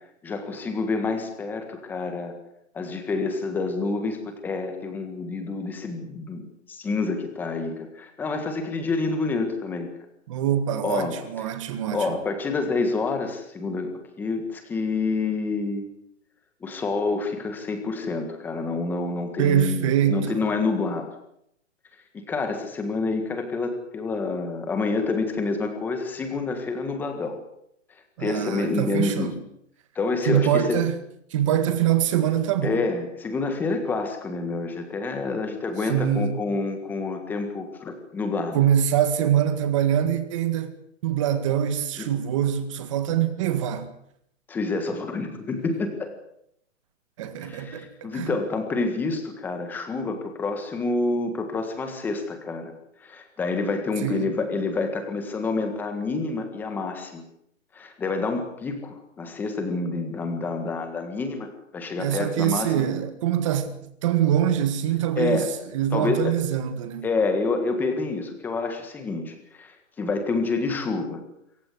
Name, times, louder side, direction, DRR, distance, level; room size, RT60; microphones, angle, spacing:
voice 1, 0.2-2.3 2.7-9.9 10.8-11.1 11.9-13.9 14.2-15.8 16.6-21.1 22.1-27.4 28.2-29.3 29.9-30.8 32.6-38.6 42.0-42.1 44.5-46.1 47.4-52.7 53.0-57.2 57.7-62.8 65.2-65.5 65.9-66.4 67.0-71.2, left 3 dB, 5° left, 1.6 m, -28 dB
voice 2, 10.3-12.2 19.4-20.4 28.2-29.3 30.3-31.0 31.3-32.8 35.9-36.3 38.5-40.7 41.0-43.9 47.2-48.3 54.0-54.3 62.0-63.7 64.0-65.5 65.7-67.1, right 10 dB, 25° right, 1.9 m, -24 dB
26.0 x 15.5 x 8.0 m
hypercardioid pair, 175°, 38 cm